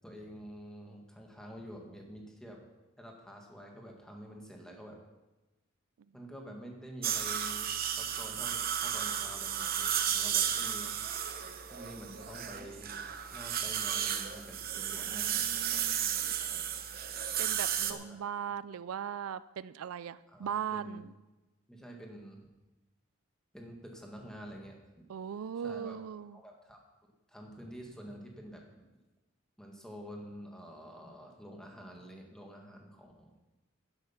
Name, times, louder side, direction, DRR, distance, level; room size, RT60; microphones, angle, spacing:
voice 1, 0.0-2.6 3.0-5.0 6.1-11.0 11.7-12.9 13.3-16.0 16.4-16.7 17.9-18.1 20.3-21.0 21.7-22.4 23.5-24.8 25.5-26.0 26.3-26.8 27.3-28.6 29.6-33.3, equal, 5° left, 0 dB, 1.7 m, -48 dB
sound 1, 7.0-17.9, right 9 dB, 45° right, 0.9 m, -33 dB
voice 2, 14.8-16.4 17.4-21.1 25.1-26.4, right 8 dB, 90° right, 16 dB, 0.4 m, -39 dB
11.5 x 10.5 x 5.8 m, 1.1 s
head